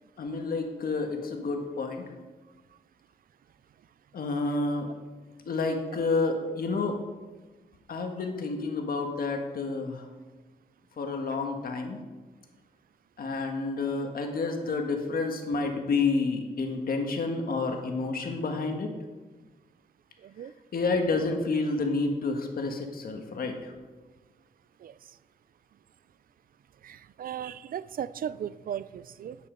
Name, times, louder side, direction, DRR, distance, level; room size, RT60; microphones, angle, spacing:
voice 1, 0.2-2.0 4.1-4.9 5.5-7.0 7.9-10.0 11.0-12.0 13.2-18.9 20.7-23.5, left 3 dB, 75° left, 4 dB, 1.6 m, -29 dB
voice 2, 20.2-20.5 24.8-24.9 26.8-29.4, right 9 dB, 70° right, 17 dB, 0.4 m, -36 dB
9.6 x 9.5 x 5.1 m, 1.3 s
wide cardioid pair, 110°, 15 cm